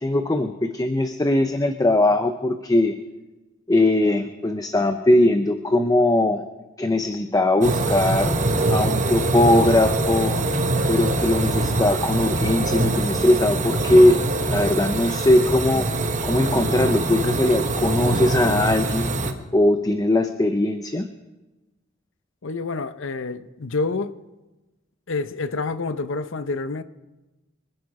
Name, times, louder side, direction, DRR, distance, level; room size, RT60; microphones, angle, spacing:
voice 1, 0.0-3.0 3.7-6.4 6.8-8.4 8.7-10.4 10.9-14.2 14.5-15.9 16.2-19.2 19.5-21.1, left 1 dB, 20° left, 0.6 m, -20 dB
sound 1, 7.6-19.3, right 2 dB, 40° right, 1.2 m, -23 dB
voice 2, 22.4-24.1 25.1-26.8, left 3 dB, 65° left, 0.7 m, -28 dB
25.0 x 10.5 x 4.8 m
head